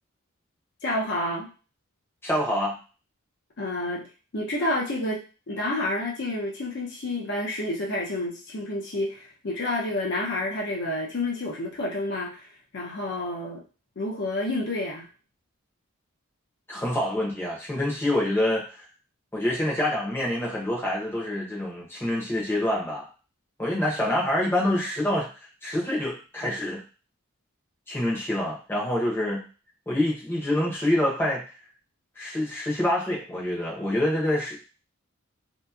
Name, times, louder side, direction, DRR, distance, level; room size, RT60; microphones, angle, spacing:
voice 1, 0.8-1.5 3.6-4.1 4.3-5.2 5.5-13.6 14.0-15.1, left 1 dB, 55° left, -2 dB, 0.6 m, -29 dB
voice 2, 2.2-2.8 16.7-18.8 19.3-23.1 23.6-25.3 25.6-26.8 27.9-29.5 29.9-31.4 32.2-34.6, left 1 dB, 10° left, -5 dB, 0.7 m, -26 dB
2.8 x 2.6 x 2.3 m, 0.34 s
head